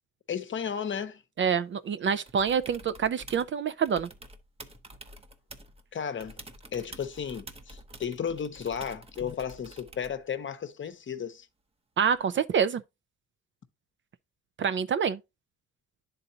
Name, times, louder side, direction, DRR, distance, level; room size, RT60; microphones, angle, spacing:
voice 1, 0.3-1.2 5.9-6.4 6.7-11.5, left 7 dB, 40° left, 0.8 m, -34 dB
voice 2, 1.4-4.1 12.0-12.8 14.6-15.2, right 7 dB, 40° right, 0.4 m, -26 dB
sound 1, 2.3-3.5 3.9-5.8 6.2-10.2 12.1-12.2, right 1 dB, 20° right, 0.8 m, -48 dB
10.5 x 4.0 x 2.7 m
cardioid pair, 90°, 30 cm